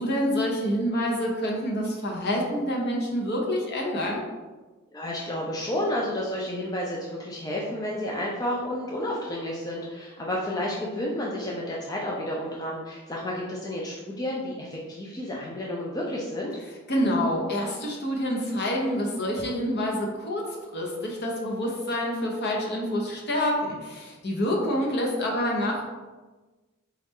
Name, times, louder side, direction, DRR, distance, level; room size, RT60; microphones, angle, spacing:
voice 1, 0.0-4.2 16.9-25.8, equal, 50° left, -1 dB, 0.8 m, -27 dB
voice 2, 4.9-16.5, left 1 dB, 15° left, -4 dB, 0.4 m, -31 dB
4.1 x 2.4 x 3.5 m, 1.2 s
head